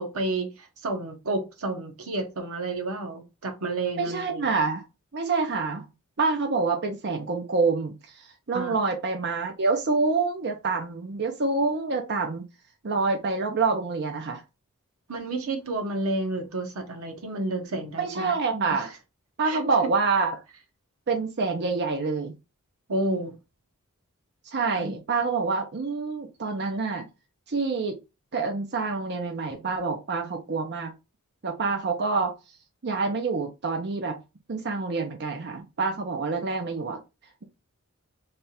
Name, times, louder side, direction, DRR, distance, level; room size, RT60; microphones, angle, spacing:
voice 1, 0.0-4.5 8.5-8.8 15.1-18.3 18.7-18.9 19.4-19.6 22.9-23.4 24.7-25.0, right 2 dB, 85° right, 1.0 m, -31 dB
voice 2, 4.0-4.8 5.1-5.9 6.2-12.5 12.8-14.4 18.0-18.9 19.4-20.3 21.1-22.3 24.5-27.1 27.5-28.0 28.3-31.0 31.4-32.4 32.8-34.2 34.5-37.0, right 4 dB, 50° right, 0.6 m, -27 dB
3.4 x 2.4 x 4.2 m
head